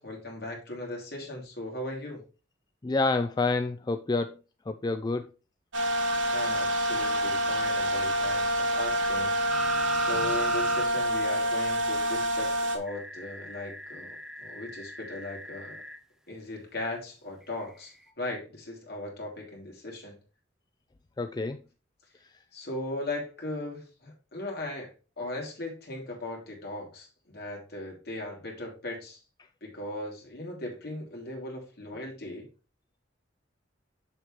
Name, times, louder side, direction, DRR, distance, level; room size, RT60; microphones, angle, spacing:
voice 1, 0.0-2.2 6.3-9.5 10.0-15.8 16.3-20.1 22.5-24.9 25.2-29.2 29.6-32.5, left 2 dB, 55° left, 3.1 m, -38 dB
voice 2, 2.8-4.4 4.7-5.3 21.2-21.6 22.2-22.3, left 3 dB, 20° left, 0.4 m, -28 dB
sound 1, 5.7-12.8, equal, 85° right, 1.8 m, -27 dB
sound 2, 9.5-10.9 11.2-11.3 12.9-16.0 17.7-17.8, right 2 dB, ahead, 0.7 m, -38 dB
7.1 x 6.6 x 3.2 m
head